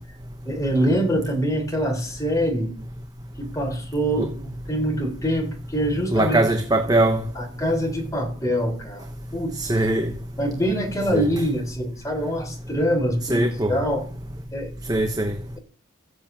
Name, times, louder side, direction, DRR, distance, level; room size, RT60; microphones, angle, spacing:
voice 1, 0.5-2.7 3.4-6.4 7.3-9.1 9.3-9.9 10.4-14.0 14.5-14.7, equal, 15° left, 4.0 m, -25 dB
voice 2, 6.1-7.2 9.6-10.1 11.1-11.3 13.3-13.8 14.9-15.4, right 1 dB, 20° right, 1.1 m, -21 dB
14.5 x 8.0 x 8.8 m
head